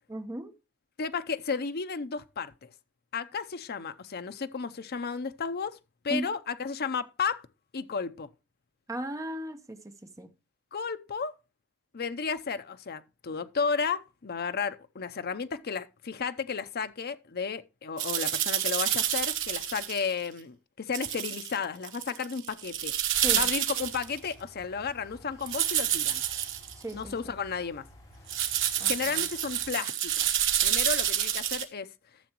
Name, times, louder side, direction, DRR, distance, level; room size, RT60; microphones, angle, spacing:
voice 1, 0.1-0.5 6.1-6.3 8.9-10.3 23.2-23.5 26.8-27.4 28.8-29.3, right 1 dB, 15° right, 0.9 m, -37 dB
voice 2, 1.0-2.7 3.1-5.8 6.0-7.4 7.7-8.3 10.7-11.3 11.9-22.9 23.3-26.2 26.9-27.8 28.8-30.3 30.6-31.9, left 5 dB, 50° left, 0.7 m, -33 dB
sound 1, 18.0-20.1 20.9-21.6 21.8-24.2 25.5-26.7 28.3-31.6, right 11 dB, 65° right, 1.2 m, -28 dB
sound 2, 23.8-29.7, equal, 20° left, 6.3 m, -53 dB
13.0 x 6.9 x 3.0 m
head